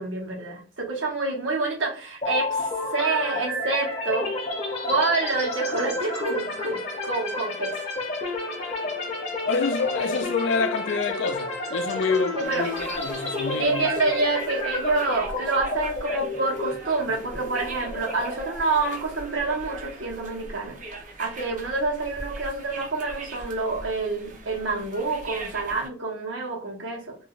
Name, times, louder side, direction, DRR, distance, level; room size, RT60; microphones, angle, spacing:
voice 1, 0.0-4.3 4.8-7.8 12.4-12.7 13.5-20.8 21.2-27.2, right 3 dB, 75° right, 0.9 m, -27 dB
sound 1, 2.2-20.0, left 2 dB, 35° left, 0.7 m, -31 dB
voice 2, 9.5-13.9, left 4 dB, 70° left, 0.4 m, -27 dB
sound 2, 12.4-25.9, right 2 dB, 40° right, 0.5 m, -40 dB
2.5 x 2.1 x 3.7 m
head